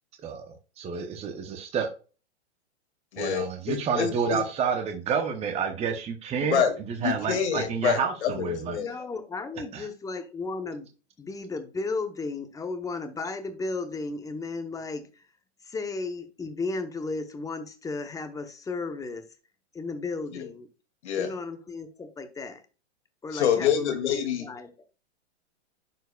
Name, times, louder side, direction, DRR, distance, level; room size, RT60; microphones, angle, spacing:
voice 1, 0.2-1.9 3.2-6.6 6.9-8.8 9.7-9.9, right 6 dB, 20° right, 0.9 m, -29 dB
voice 2, 3.1-4.4 6.4-6.7 7.0-8.9 21.0-21.3 23.3-24.5, left 8 dB, 75° left, 2.3 m, -27 dB
voice 3, 8.8-10.9 11.2-15.2 15.6-19.2 19.7-20.7 21.2-22.6 23.2-24.8, left 3 dB, 10° left, 0.8 m, -34 dB
11.0 x 4.6 x 2.3 m
hypercardioid pair, 125°, 34 cm